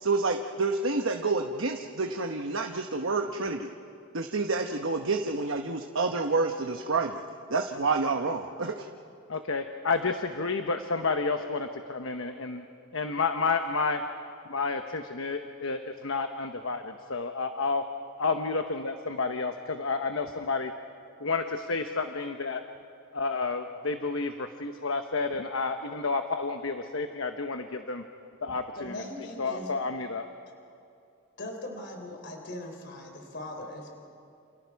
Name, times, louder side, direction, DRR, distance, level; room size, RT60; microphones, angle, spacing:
voice 1, 0.0-3.7 4.1-7.2 7.5-8.9, right 3 dB, 65° right, 3 dB, 1.1 m, -28 dB
voice 2, 9.3-12.6 12.9-14.0 14.5-17.8 18.2-20.7 21.2-22.6 23.1-28.0 28.4-29.0 29.4-30.3, left 4 dB, 70° left, 6 dB, 1.1 m, -30 dB
voice 3, 28.8-29.7 31.4-33.9, left 1 dB, 55° left, 3 dB, 3.5 m, -40 dB
29.0 x 28.0 x 4.7 m, 2.5 s
head